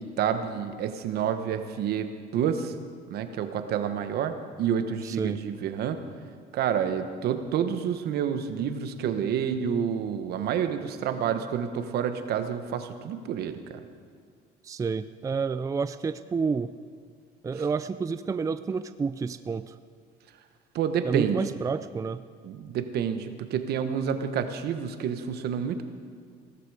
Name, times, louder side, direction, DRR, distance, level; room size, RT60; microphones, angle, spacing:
voice 1, 0.0-2.7 3.1-6.0 6.5-13.8 20.7-21.5 22.4-25.8, right 8 dB, 70° right, 9 dB, 1.2 m, -29 dB
voice 2, 5.0-5.4 14.6-16.7 17.4-19.8 21.0-22.2, right 5 dB, 20° right, 13 dB, 0.4 m, -29 dB
17.0 x 13.5 x 4.9 m, 2.1 s
cardioid pair, 110°, 17 cm